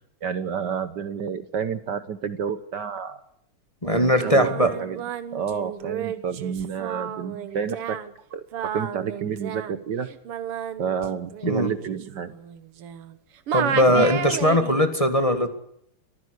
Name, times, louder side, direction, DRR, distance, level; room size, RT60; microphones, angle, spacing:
voice 1, 0.2-3.2 3.9-5.0 5.3-8.0 8.3-8.4 8.7-10.1 10.8-12.3 13.9-14.1, right 7 dB, 60° right, 12 dB, 1.4 m, -29 dB
voice 2, 3.8-4.7 11.4-11.7 13.5-15.5, left 1 dB, 15° left, 7 dB, 1.6 m, -20 dB
Singing, 4.1-13.2 13.5-14.9, right 8 dB, 85° right, 2.2 m, -32 dB
23.5 x 15.0 x 8.1 m, 0.75 s
omnidirectional pair, 2.4 m